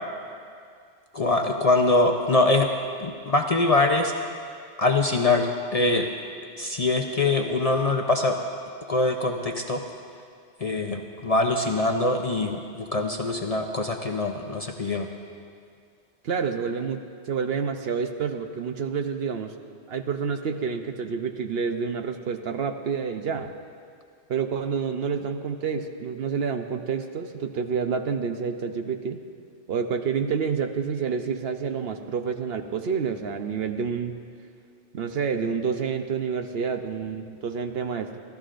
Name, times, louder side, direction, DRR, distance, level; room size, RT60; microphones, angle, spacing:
voice 1, 1.1-2.7 3.0-4.1 4.8-6.1 6.6-8.4 8.9-9.8 10.6-15.1, left 2 dB, 40° left, 3 dB, 0.6 m, -23 dB
voice 2, 16.2-19.5 19.9-23.5 24.3-29.2 29.7-34.2 34.9-38.2, right 6 dB, 60° right, 6 dB, 0.9 m, -28 dB
26.5 x 13.5 x 2.5 m, 2.2 s
omnidirectional pair, 1.2 m